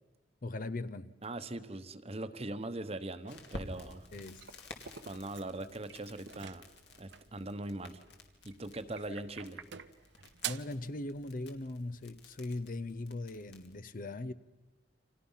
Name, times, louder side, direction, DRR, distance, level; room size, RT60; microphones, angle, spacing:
voice 1, 0.4-1.2 4.1-4.6 10.4-14.3, left 2 dB, 50° left, 0.7 m, -40 dB
voice 2, 1.2-4.1 5.1-6.7 7.0-8.0 8.4-9.6, right 2 dB, 35° right, 1.1 m, -41 dB
Crackle, 3.3-13.8, left 2 dB, 65° left, 2.5 m, -53 dB
sound 1, 3.7-5.5 5.9-6.0 6.2-6.6 7.1-7.2 8.5-10.6, right 4 dB, 90° right, 1.4 m, -52 dB
sound 2, 6.2-7.4 8.6-9.0 9.4-10.8, right 11 dB, 75° right, 0.8 m, -44 dB
29.5 x 26.0 x 5.7 m
head